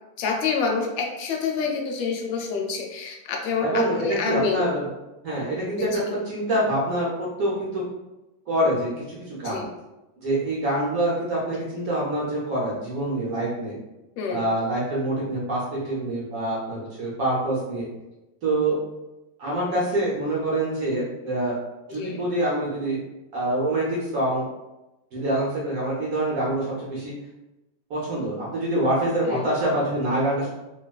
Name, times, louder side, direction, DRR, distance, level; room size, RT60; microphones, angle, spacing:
voice 1, 0.2-4.7 5.8-5.9 9.4-9.7 14.2-14.4 21.9-22.3 29.3-29.5, left 5 dB, 85° left, 1 dB, 1.3 m, -27 dB
voice 2, 3.6-4.9 5.2-7.8 8.5-9.6 10.2-13.8 14.3-17.9 18.4-18.8 19.4-21.6 21.9-23.0 23.3-24.4 25.1-27.1 27.9-30.5, right 1 dB, 60° right, -6 dB, 0.9 m, -25 dB
3.4 x 2.3 x 2.2 m, 0.98 s
omnidirectional pair, 2.1 m